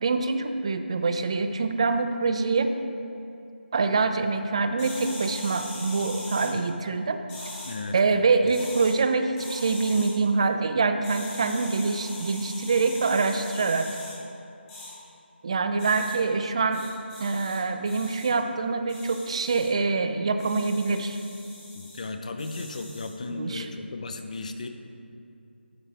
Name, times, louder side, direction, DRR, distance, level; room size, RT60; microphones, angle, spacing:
voice 1, 0.0-2.8 3.7-7.2 7.9-14.0 15.4-16.8 17.2-21.2 23.3-23.7, right 4 dB, 30° right, 8 dB, 0.4 m, -25 dB
sound 1, 4.8-6.5 7.3-7.8 8.4-8.9 9.4-10.1 11.0-14.1 14.7-14.9 15.8-16.1 16.7-17.6 17.8-18.3 18.9-19.7 20.4-22.0 22.4-23.1, left 1 dB, 10° left, 1.1 m, -41 dB
voice 2, 7.7-8.2 21.7-24.7, left 3 dB, 40° left, 7 dB, 0.5 m, -35 dB
11.5 x 6.0 x 3.3 m, 2.6 s
figure-of-eight pair, 165°, 6 cm